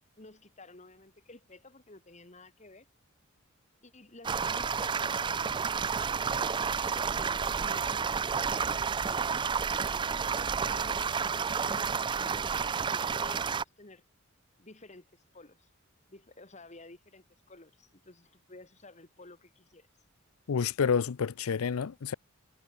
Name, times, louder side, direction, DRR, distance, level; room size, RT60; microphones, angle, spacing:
voice 1, 0.2-2.9 3.8-6.6 7.0-9.3 10.6-12.5 12.8-14.0 14.6-15.7 16.1-19.9, left 2 dB, 35° left, 2.3 m, -53 dB
sound 1, 4.2-13.6, right 6 dB, 20° right, 0.3 m, -30 dB
voice 2, 20.5-22.1, left 6 dB, 85° left, 0.5 m, -29 dB
head